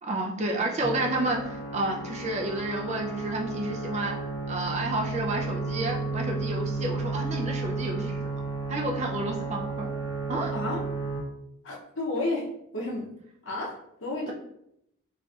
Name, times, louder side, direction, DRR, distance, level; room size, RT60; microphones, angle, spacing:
voice 1, 0.0-4.2 4.5-8.2 8.7-9.9 10.3-10.5 14.3-14.4, right 2 dB, 35° right, 0 dB, 0.4 m, -30 dB
sound 1, 0.8-11.2, right 3 dB, 20° left, 1.1 m, -33 dB
voice 2, 10.5-10.8 11.6-12.5 12.7-13.1 13.4-13.8 14.0-14.3, left 2 dB, 65° left, -1 dB, 0.7 m, -31 dB
4.0 x 2.5 x 2.3 m, 0.78 s
head